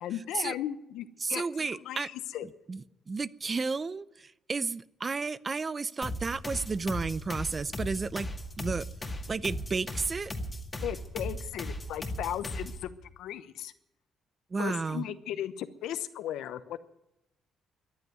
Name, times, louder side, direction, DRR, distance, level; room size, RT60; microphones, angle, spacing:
voice 1, 0.0-2.5 10.8-13.7 14.6-16.8, left 11 dB, 85° left, 13 dB, 0.9 m, -36 dB
voice 2, 1.2-2.1 2.7-8.3 8.6-8.9 9.3-10.3 14.5-15.1, right 4 dB, 30° right, 19 dB, 0.6 m, -32 dB
sound 1, 6.0-12.9, equal, 20° left, 2.0 m, -37 dB
14.5 x 11.0 x 9.3 m, 0.88 s
cardioid pair, 90°, 0 cm